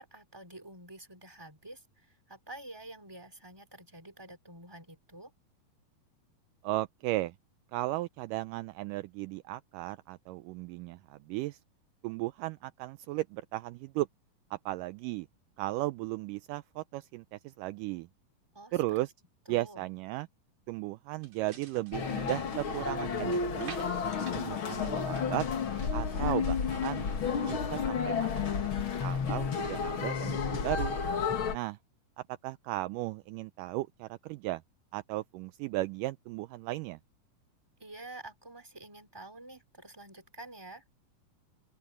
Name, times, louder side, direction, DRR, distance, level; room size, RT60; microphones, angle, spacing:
voice 1, 0.0-5.3 18.5-18.8 19.5-19.9 26.0-26.3 37.8-40.8, right 2 dB, 5° right, 3.3 m, -48 dB
voice 2, 6.6-7.4 7.7-11.6 12.0-14.1 14.5-15.3 15.6-18.1 18.7-19.1 19.5-20.3 20.7-23.8 24.3-25.5 25.9-27.1 27.4-28.5 29.0-31.0 31.5-31.8 32.4-34.6 34.9-37.0, right 18 dB, 85° right, 1.9 m, -35 dB
sound 1, 21.2-23.1 23.6-24.6 24.8-26.2 26.5-28.7, right 6 dB, 50° right, 3.6 m, -52 dB
sound 2, 21.9-31.6, left 6 dB, 45° left, 2.1 m, -31 dB
open air
omnidirectional pair, 4.3 m